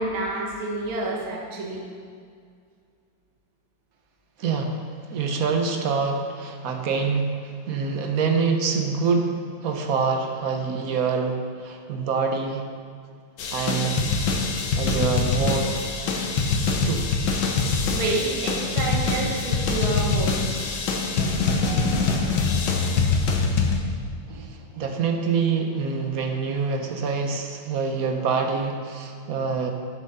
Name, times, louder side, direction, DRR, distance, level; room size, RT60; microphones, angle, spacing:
voice 1, 0.0-1.9 17.9-20.4 21.6-22.1, right 2 dB, 80° right, -1 dB, 2.1 m, -29 dB
voice 2, 4.4-12.6 13.5-14.0 14.8-15.8 16.9-17.1 22.7-22.8 24.3-29.7, right 5 dB, 55° right, 4 dB, 1.1 m, -26 dB
sound 1, 13.4-23.8, left 4 dB, 65° left, 1.5 m, -24 dB
10.0 x 6.1 x 5.4 m, 2.2 s
omnidirectional pair, 2.2 m